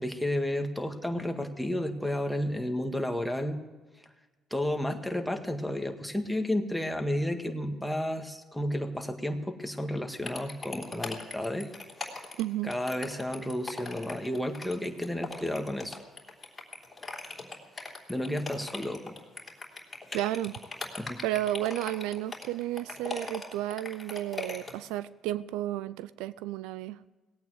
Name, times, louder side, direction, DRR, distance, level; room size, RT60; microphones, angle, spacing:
voice 1, 0.0-3.6 4.5-11.7 12.6-16.0 18.1-19.2 21.0-21.2, left 1 dB, 5° left, 5 dB, 1.8 m, -32 dB
sound 1, 10.2-24.9, left 3 dB, 20° left, 3.3 m, -40 dB
voice 2, 12.4-12.7 20.1-20.5 21.2-27.1, right 14 dB, 90° right, 18 dB, 0.4 m, -32 dB
18.5 x 8.8 x 7.9 m, 1.3 s
supercardioid pair, 80°, 0 cm